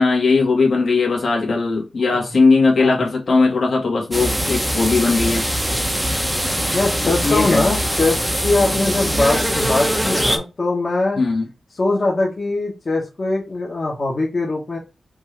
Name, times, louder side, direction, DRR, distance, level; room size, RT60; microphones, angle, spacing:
voice 1, 0.0-5.5 7.2-7.7 11.2-11.5, left 4 dB, 60° left, 1.8 m, -18 dB
sound 1, 4.1-10.4, equal, 5° right, 0.7 m, -22 dB
voice 2, 6.7-11.2 11.8-14.8, left 2 dB, 35° left, 1.2 m, -21 dB
5.3 x 2.7 x 3.3 m
wide cardioid pair, 175°, 0 cm